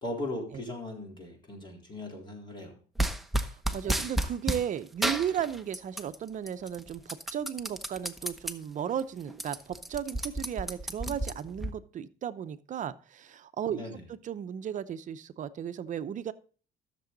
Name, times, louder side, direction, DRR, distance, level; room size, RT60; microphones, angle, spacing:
voice 1, 0.0-2.8 3.8-4.1 13.7-14.0, left 1 dB, 30° left, 1 dB, 3.6 m, -38 dB
sound 1, 3.0-4.7 5.0-6.2 6.5-8.5 9.0-9.1 9.3-11.7, right 1 dB, ahead, 0.8 m, -31 dB
voice 2, 3.7-13.8 14.1-16.3, right 9 dB, 50° right, 12 dB, 0.7 m, -35 dB
13.5 x 6.9 x 3.9 m, 0.41 s
cardioid pair, 110°, 17 cm